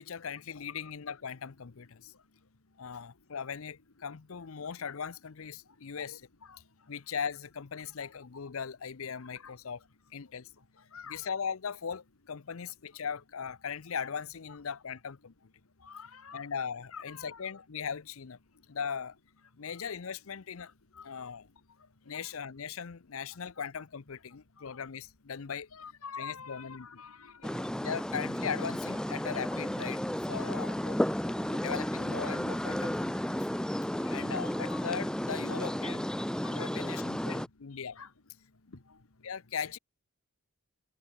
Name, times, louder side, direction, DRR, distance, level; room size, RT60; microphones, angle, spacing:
voice 1, 0.0-2.1 2.8-6.2 6.9-9.8 10.1-10.5 11.1-15.3 16.3-18.4 18.7-19.2 19.6-20.7 21.0-21.5 22.1-25.7 26.2-26.9 27.8-30.8 31.5-33.4 34.1-36.0 36.5-38.0 39.2-39.8, left 6 dB, 70° left, 0.7 m, -39 dB
voice 2, 15.8-16.4 16.9-17.4 21.0-21.1 22.1-22.2 25.7-27.6 30.7-31.0 31.4-31.6 34.0-34.8 35.5-35.6 36.4-37.3 38.0-38.1, left 5 dB, 85° left, 1.8 m, -47 dB
sound 1, 27.4-37.5, equal, 5° left, 0.4 m, -33 dB
open air
head